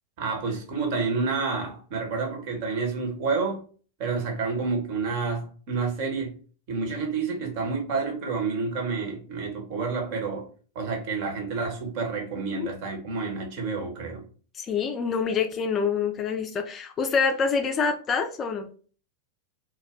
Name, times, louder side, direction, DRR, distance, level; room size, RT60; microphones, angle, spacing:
voice 1, 0.2-3.6 4.0-6.4 6.7-10.5 10.7-14.2, right 4 dB, 45° right, 1.0 m, -29 dB
voice 2, 14.6-18.7, left 5 dB, 25° left, 0.4 m, -26 dB
2.3 x 2.1 x 3.6 m
figure-of-eight pair, 90°, 0 cm